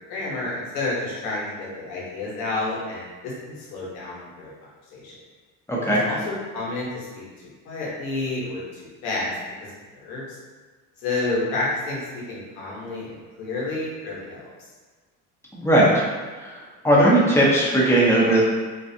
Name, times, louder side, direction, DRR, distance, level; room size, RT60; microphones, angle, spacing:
voice 1, 0.1-4.5 4.9-5.2 6.0-7.2 7.6-9.4 9.9-10.4 11.0-14.5, left 2 dB, 80° left, -6 dB, 1.1 m, -30 dB
voice 2, 5.7-6.0 15.5-16.0 16.4-16.6 16.8-18.4, right 1 dB, 5° left, -6 dB, 0.7 m, -18 dB
2.5 x 2.3 x 2.7 m, 1.4 s
supercardioid pair, 85°, 42 cm